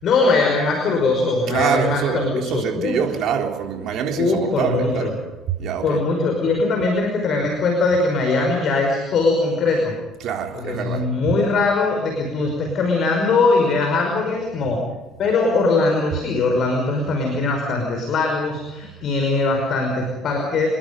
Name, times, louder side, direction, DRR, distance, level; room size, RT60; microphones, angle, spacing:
voice 1, 0.0-3.0 4.1-5.1 5.8-9.9 10.5-14.8 15.2-20.7, left 3 dB, 50° left, 2 dB, 5.6 m, -21 dB
voice 2, 1.5-5.2 5.6-6.0 10.2-11.1, right 7 dB, 55° right, 3 dB, 3.7 m, -25 dB
28.5 x 21.5 x 5.4 m, 1.1 s
figure-of-eight pair, 55°, 0 cm